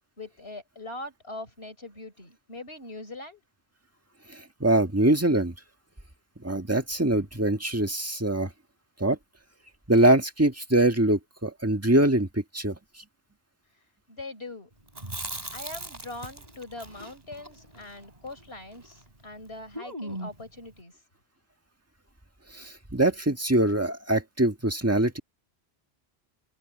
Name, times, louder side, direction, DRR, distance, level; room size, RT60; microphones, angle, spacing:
voice 1, 0.2-3.4 14.1-14.7 15.5-20.9, left 2 dB, 70° left, 5.1 m, -41 dB
voice 2, 4.3-5.5 6.4-8.5 9.0-9.2 9.9-12.7 22.5-25.2, right 1 dB, 15° right, 1.6 m, -23 dB
Chewing mastication, 14.9-19.1 19.3-19.4 19.7-20.5, right 1 dB, 40° right, 3.3 m, -39 dB
open air
omnidirectional pair, 1.1 m